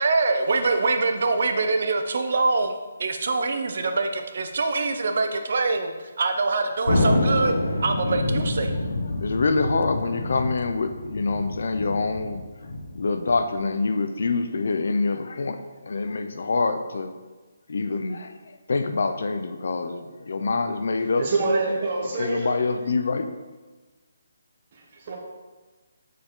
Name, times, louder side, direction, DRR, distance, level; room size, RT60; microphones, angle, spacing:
voice 1, 0.0-2.7 3.0-7.5 7.8-8.7, right 3 dB, 45° right, 6 dB, 0.7 m, -24 dB
Thunder, 6.9-13.7, left 1 dB, 75° left, 1.4 m, -27 dB
voice 2, 9.1-12.4 12.9-17.1 17.7-21.3 22.2-23.3, left 3 dB, 55° left, 8 dB, 0.6 m, -26 dB
voice 3, 21.0-22.5 24.7-25.2, right 3 dB, 30° right, -2 dB, 1.2 m, -26 dB
6.9 x 6.5 x 3.8 m, 1.3 s
hypercardioid pair, 175°, 0 cm